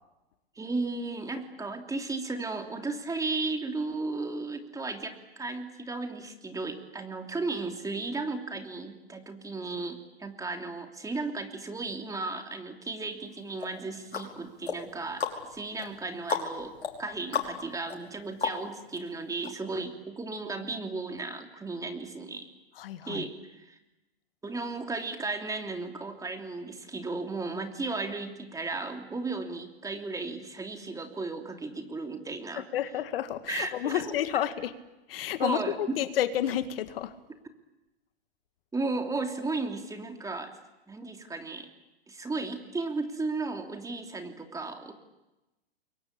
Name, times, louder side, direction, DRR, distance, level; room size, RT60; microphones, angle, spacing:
voice 1, 0.6-15.3 15.5-22.5 23.1-23.8 24.4-32.6 33.5-34.1 35.4-36.0 38.7-40.6 40.9-41.7 42.1-44.9, right 3 dB, 10° right, 5 dB, 3.0 m, -35 dB
sound 1, 13.6-19.0 19.4-19.5, left 6 dB, 85° left, 5.2 m, -36 dB
voice 2, 22.7-23.3 32.5-34.7 35.1-37.1, left 11 dB, 65° left, 11 dB, 1.9 m, -30 dB
28.0 x 23.0 x 8.8 m, 0.99 s
hypercardioid pair, 115°, 31 cm